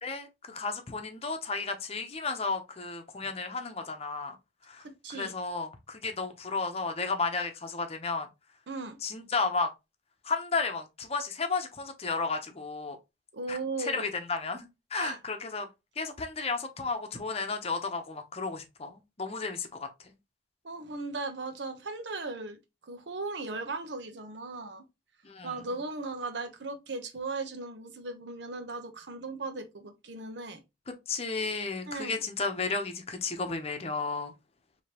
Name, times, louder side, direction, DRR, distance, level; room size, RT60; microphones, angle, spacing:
voice 1, 0.0-4.4 4.7-4.8 5.1-8.3 9.0-9.7 10.2-13.0 13.5-15.7 16.0-19.9 25.2-25.6 30.9-34.3, left 4 dB, 35° left, 0.8 m, -33 dB
voice 2, 4.8-5.3 8.7-9.0 13.3-14.1 14.9-15.2 20.6-22.6 22.9-24.8 25.4-30.6 31.9-32.2, right 3 dB, 80° right, 0.9 m, -37 dB
5.0 x 2.9 x 2.8 m
head